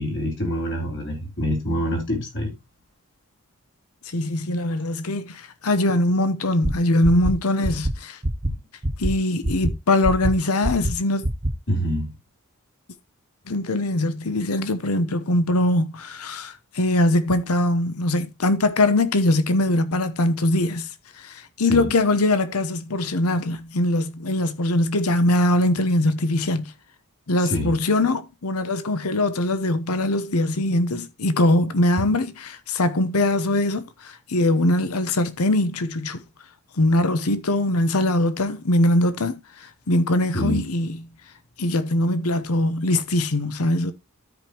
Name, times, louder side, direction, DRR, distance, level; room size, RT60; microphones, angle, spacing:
voice 1, 0.0-2.5 8.4-8.6 11.7-12.1 21.6-22.0 27.4-27.7 40.3-40.6, equal, 60° left, 3.8 m, -26 dB
voice 2, 4.1-8.2 9.0-11.2 13.5-20.9 21.2-26.7 27.3-36.2 36.8-39.4 39.9-41.0 41.6-43.9, left 1 dB, 85° left, 0.9 m, -22 dB
sound 1, 6.6-6.7 7.0-7.3 7.6-7.9 8.2-8.5 8.8-9.1 9.4-9.7 10.0-10.3 10.6-10.9 11.2-11.5, right 1 dB, 30° right, 1.0 m, -23 dB
13.5 x 5.2 x 2.9 m
head